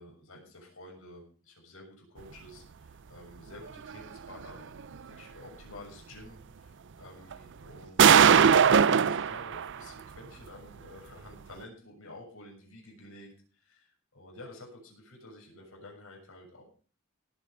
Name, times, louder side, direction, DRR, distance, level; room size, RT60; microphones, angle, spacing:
voice 1, 0.0-16.6, left 1 dB, 70° left, 0 dB, 6.6 m, -50 dB
sound 1, 3.9-4.0 4.4-4.5 7.3-7.4 8.0-9.8, right 7 dB, 60° right, 0.5 m, -19 dB
18.0 x 8.8 x 5.0 m, 0.40 s
head